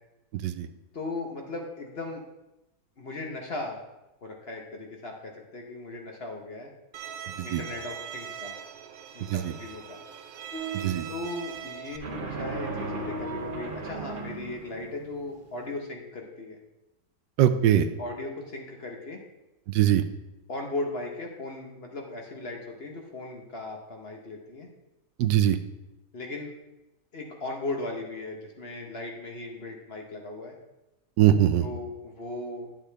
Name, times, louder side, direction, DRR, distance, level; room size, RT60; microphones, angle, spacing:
voice 1, 0.3-0.7 7.4-7.6 9.2-9.5 10.7-11.0 17.4-17.9 19.7-20.0 25.2-25.6 31.2-31.7, right 11 dB, 90° right, 11 dB, 1.3 m, -22 dB
voice 2, 0.9-2.2 3.0-3.8 4.2-6.7 7.4-8.5 9.1-10.0 11.1-16.6 18.0-19.2 20.5-24.7 26.1-26.5 27.1-30.5 31.6-32.7, left 2 dB, 40° left, 1 dB, 1.1 m, -37 dB
Bowed string instrument, 6.9-12.0, right 8 dB, 70° right, 1.0 m, -41 dB
sound 1, 10.5-15.6, right 3 dB, 40° right, 1.0 m, -36 dB
9.7 x 7.3 x 3.4 m, 0.96 s
omnidirectional pair, 1.8 m